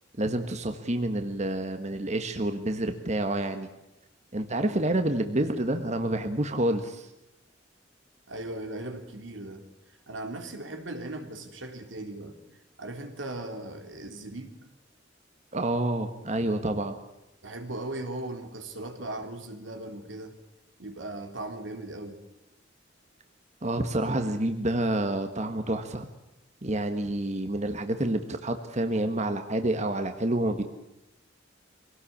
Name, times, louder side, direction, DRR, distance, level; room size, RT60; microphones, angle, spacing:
voice 1, 0.2-3.7 4.3-7.1 15.5-17.0 23.6-26.1 26.6-30.6, right 1 dB, 40° right, 7 dB, 1.5 m, -28 dB
voice 2, 4.7-5.1 8.3-9.6 10.1-12.4 12.8-14.6 17.4-20.4 20.8-22.2, right 2 dB, 80° right, 6 dB, 3.5 m, -38 dB
24.5 x 18.0 x 8.7 m, 0.93 s
head